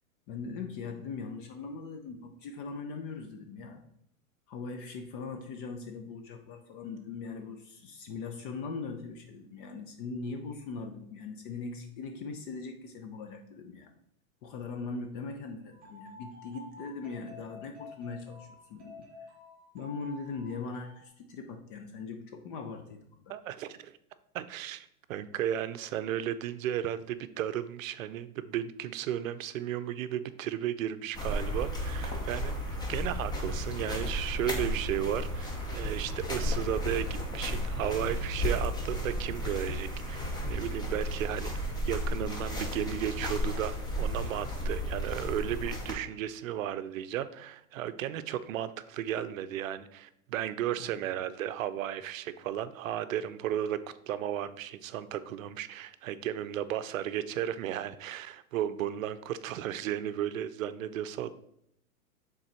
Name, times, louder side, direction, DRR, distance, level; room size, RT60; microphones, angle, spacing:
voice 1, 0.3-3.8 4.5-13.9 14.4-19.1 19.7-23.3 50.8-50.9, left 4 dB, 35° left, 5 dB, 0.7 m, -40 dB
sound 1, 15.7-21.1, left 3 dB, 20° right, 1.3 m, -50 dB
voice 2, 23.3-24.0 24.3-32.5 32.9-53.8 54.1-61.3, right 11 dB, 65° right, 13 dB, 0.6 m, -34 dB
Folhas caminho terra, 31.1-45.9, equal, 10° left, 0.8 m, -33 dB
6.4 x 3.9 x 4.3 m, 0.73 s
hypercardioid pair, 140°, 43 cm